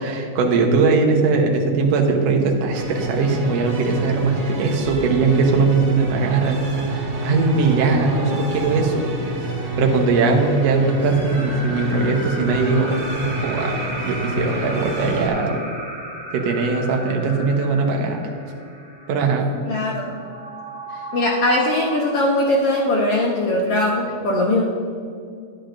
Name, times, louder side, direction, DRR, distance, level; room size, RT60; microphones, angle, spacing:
voice 1, 0.0-6.7 7.0-9.1 9.4-9.5 9.8-13.0 13.4-13.7 14.0-15.6 16.3-18.2 19.1-19.5 20.9-21.0, right 4 dB, 65° right, 1 dB, 1.9 m, -20 dB
sound 1, 2.7-15.3, right 1 dB, 45° right, 1.3 m, -28 dB
sound 2, 5.8-23.1, right 1 dB, 20° right, 1.9 m, -36 dB
voice 2, 19.7-20.1 21.1-24.6, left 1 dB, 75° left, -2 dB, 1.4 m, -20 dB
10.5 x 10.5 x 2.5 m, 2.4 s
omnidirectional pair, 3.6 m